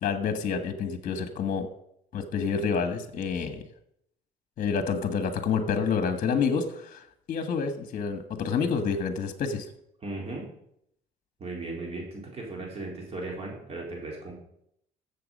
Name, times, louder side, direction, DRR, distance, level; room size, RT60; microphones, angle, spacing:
voice 1, 0.0-1.7 2.1-3.6 4.6-7.0 7.3-9.7, left 5 dB, 50° left, 8 dB, 1.5 m, -28 dB
voice 2, 10.0-10.5 11.4-14.3, right 2 dB, 35° right, -1 dB, 4.1 m, -36 dB
14.0 x 7.3 x 5.4 m, 0.74 s
cardioid pair, 110°, 17 cm